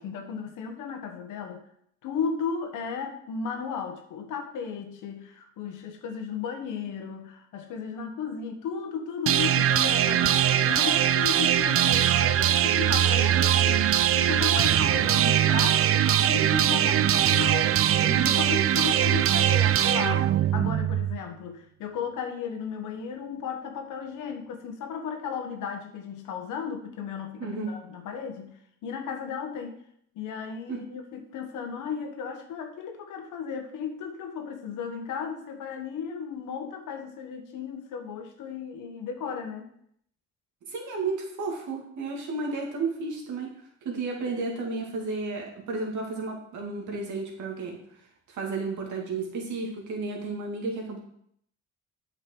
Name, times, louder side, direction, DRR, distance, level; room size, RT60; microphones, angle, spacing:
voice 1, 0.0-1.6 2.0-29.8 30.1-39.7, left 6 dB, 85° left, 5 dB, 1.3 m, -35 dB
sound 1, 9.3-21.2, right 11 dB, 50° right, 0.4 m, -22 dB
voice 2, 27.4-27.7 30.7-30.8 40.7-43.5 43.8-47.8 48.3-51.0, right 3 dB, 75° right, 0 dB, 2.4 m, -32 dB
8.0 x 5.8 x 4.6 m, 0.69 s
cardioid pair, 90°, 30 cm